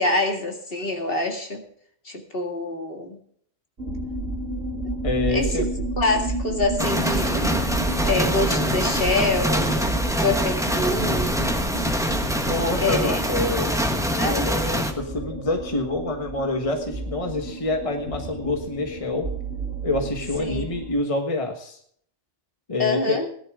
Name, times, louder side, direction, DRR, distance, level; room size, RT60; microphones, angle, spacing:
voice 1, 0.0-1.6 2.1-3.2 5.3-5.5 6.0-7.6 8.0-9.9 10.2-11.3 12.8-13.2 14.2-14.5 20.4-20.6 22.8-23.3, left 2 dB, 50° left, 3 dB, 2.4 m, -25 dB
sound 1, 3.8-20.9, right 2 dB, 55° right, 2.7 m, -31 dB
voice 2, 5.0-5.7 12.2-19.3 19.8-21.8 22.7-23.2, left 2 dB, 30° left, 4 dB, 1.5 m, -27 dB
sound 2, 6.8-14.9, equal, 5° right, 1.3 m, -25 dB
18.0 x 11.5 x 3.6 m, 0.63 s
omnidirectional pair, 1.2 m